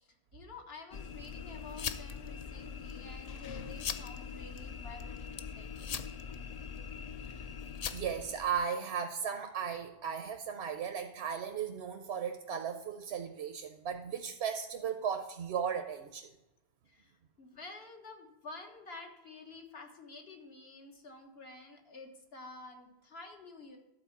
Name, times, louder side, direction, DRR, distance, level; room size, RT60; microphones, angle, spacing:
voice 1, 0.0-5.9 16.9-23.8, left 3 dB, 75° left, 3 dB, 1.7 m, -50 dB
sound 1, 0.9-8.6, left 6 dB, 50° left, 0.5 m, -41 dB
voice 2, 7.9-16.3, right 7 dB, 85° right, 7 dB, 1.0 m, -36 dB
12.0 x 4.4 x 7.1 m, 0.95 s
omnidirectional pair, 1.1 m